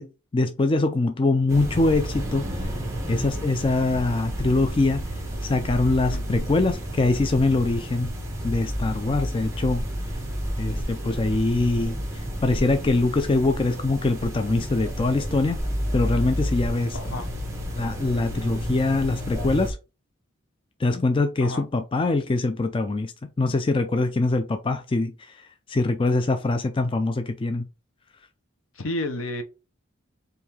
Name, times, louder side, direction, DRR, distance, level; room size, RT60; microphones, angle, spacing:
voice 1, 0.0-2.8 3.1-5.1 5.4-8.1 8.4-9.8 10.6-15.6 15.9-17.0 17.8-19.8 20.8-27.7, left 2 dB, 25° left, 0.3 m, -23 dB
sound 1, 1.5-19.7, equal, 15° right, 0.9 m, -31 dB
voice 2, 6.1-6.5 16.9-17.3 21.4-21.7 28.8-29.4, left 1 dB, 75° left, 0.8 m, -31 dB
4.5 x 2.6 x 3.4 m
head